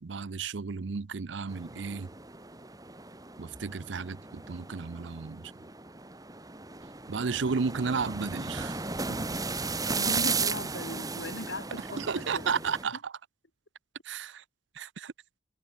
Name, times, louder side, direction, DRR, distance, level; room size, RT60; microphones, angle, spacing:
voice 1, 0.0-2.1 3.4-5.5 7.1-8.8 9.1-9.3 12.0-13.1 14.1-14.4 14.8-15.1, right 5 dB, 85° right, 0.6 m, -33 dB
sound 1, 1.5-12.8, right 4 dB, 20° right, 2.0 m, -35 dB
voice 2, 9.9-12.5, left 1 dB, 75° left, 6.1 m, -38 dB
head